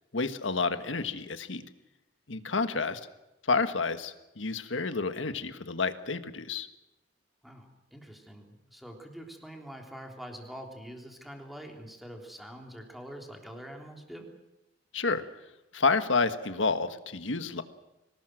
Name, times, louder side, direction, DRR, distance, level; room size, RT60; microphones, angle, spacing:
voice 1, 0.1-1.6 2.3-3.0 3.5-6.7 14.9-15.2 15.7-17.6, left 4 dB, 80° left, 10 dB, 1.5 m, -29 dB
voice 2, 7.4-14.3, equal, ahead, 2 dB, 3.4 m, -45 dB
24.5 x 19.0 x 7.8 m, 0.94 s
head